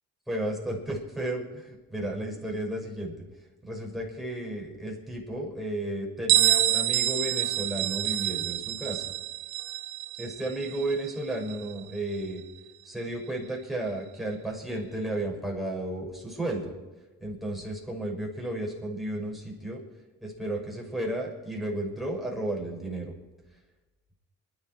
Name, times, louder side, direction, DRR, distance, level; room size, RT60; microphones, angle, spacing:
voice 1, 0.3-3.1 3.6-9.1 10.2-12.4 12.8-16.7 17.2-19.8 20.2-23.1, right 1 dB, ahead, -2 dB, 6.4 m, -33 dB
Bell, 6.3-11.8, right 14 dB, 85° right, 1.1 m, -27 dB
24.0 x 11.5 x 4.7 m, 1.1 s
supercardioid pair, 55°, 37 cm